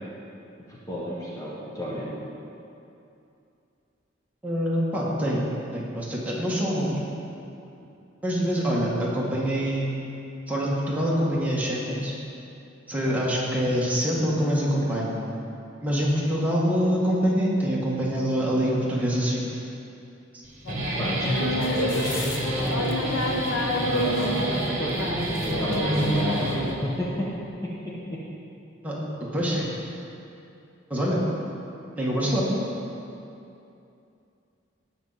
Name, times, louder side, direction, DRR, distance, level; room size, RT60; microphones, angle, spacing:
voice 1, 0.7-2.1 13.1-13.2 21.0-23.3 23.9-25.1 25.4-27.3 27.6-28.2, equal, 20° left, -6 dB, 1.3 m, -31 dB
voice 2, 4.4-5.5 5.7-7.1 8.2-9.9 10.5-12.1 12.9-15.2 15.8-19.4 28.8-29.0 29.3-29.7 30.9-31.2 32.0-32.5, equal, 10° right, -6 dB, 1.8 m, -25 dB
Guitar, 20.4-27.0, right 1 dB, 40° right, 2.0 m, -29 dB
sound 1, 20.6-26.7, left 1 dB, 80° left, 1.1 m, -29 dB
18.0 x 6.4 x 4.2 m, 2.7 s
head